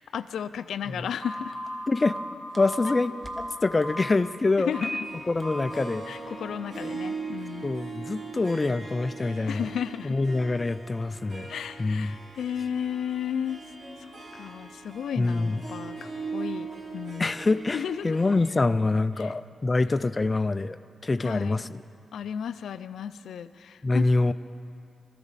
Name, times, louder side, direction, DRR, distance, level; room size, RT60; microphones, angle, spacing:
voice 1, 0.1-1.6 4.6-5.0 6.1-7.7 9.5-10.2 11.5-13.6 14.3-16.0 16.3-17.3 17.7-18.2 19.2-19.3 21.2-21.6 22.1-24.3, left 8 dB, 90° left, 12 dB, 0.4 m, -33 dB
Telephone, 1.2-4.1 4.7-5.0 5.4-5.7, equal, 20° right, 1.2 m, -35 dB
voice 2, 2.6-4.7 5.3-6.0 7.6-9.7 10.0-11.5 11.8-12.2 15.2-15.6 17.2-20.8 21.0-21.8 23.8-24.3, left 3 dB, 20° left, 11 dB, 0.3 m, -25 dB
Harp, 4.6-18.6, right 4 dB, 55° right, 3.2 m, -40 dB
23.5 x 14.0 x 4.1 m, 2.4 s
wide cardioid pair, 155°, 0 cm